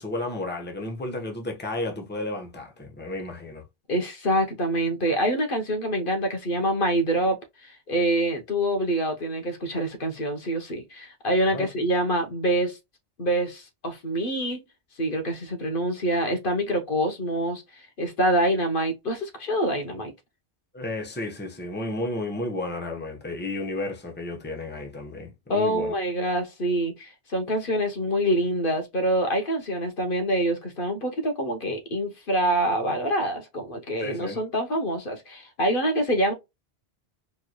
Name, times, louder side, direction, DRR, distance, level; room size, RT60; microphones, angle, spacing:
voice 1, 0.0-3.6 11.5-11.7 20.7-25.9 34.0-34.4, left 2 dB, 10° left, 0.9 m, -32 dB
voice 2, 3.9-7.4 7.6-12.8 13.2-14.6 15.0-20.1 25.5-36.3, right 1 dB, 55° left, 1.1 m, -26 dB
4.5 x 3.1 x 2.2 m
omnidirectional pair, 1.1 m